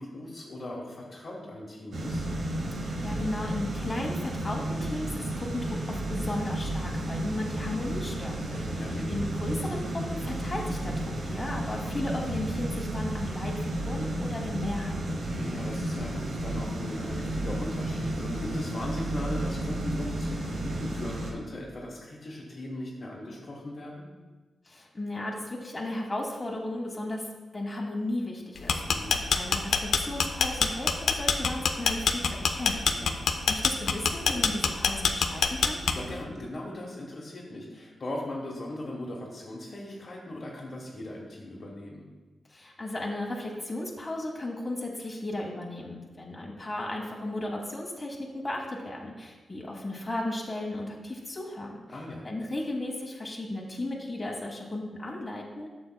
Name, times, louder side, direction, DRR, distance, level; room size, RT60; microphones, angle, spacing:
voice 1, 0.0-2.2 8.7-9.1 15.1-24.0 28.8-29.2 32.9-33.1 35.9-42.1 51.9-52.2, left 1 dB, 35° left, -4 dB, 1.2 m, -39 dB
sound 1, 1.9-21.3, right 1 dB, 60° right, 1.4 m, -32 dB
voice 2, 2.8-10.9 11.2-15.0 24.6-27.3 27.5-29.1 29.3-33.0 33.5-35.8 42.5-52.0 52.2-55.7, left 1 dB, 15° left, -2 dB, 1.0 m, -35 dB
sound 2, 28.6-36.2, left 6 dB, 85° left, 0.5 m, -25 dB
12.0 x 6.8 x 2.2 m, 1.2 s
wide cardioid pair, 155°, 0 cm